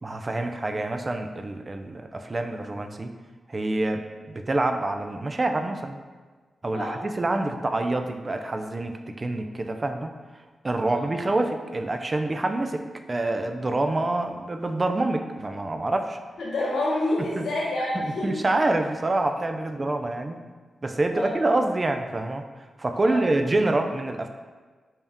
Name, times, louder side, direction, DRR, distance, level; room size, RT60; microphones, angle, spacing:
voice 1, 0.0-3.1 3.5-6.0 6.6-10.1 10.6-12.8 13.1-16.2 17.2-17.5 17.9-20.4 20.8-22.4 22.8-24.3, right 2 dB, 35° right, 6 dB, 0.3 m, -26 dB
voice 2, 16.4-18.3 21.1-21.3 23.0-23.2, left 1 dB, 80° left, -4 dB, 0.9 m, -28 dB
3.4 x 2.7 x 3.4 m, 1.4 s
cardioid pair, 50°, 0 cm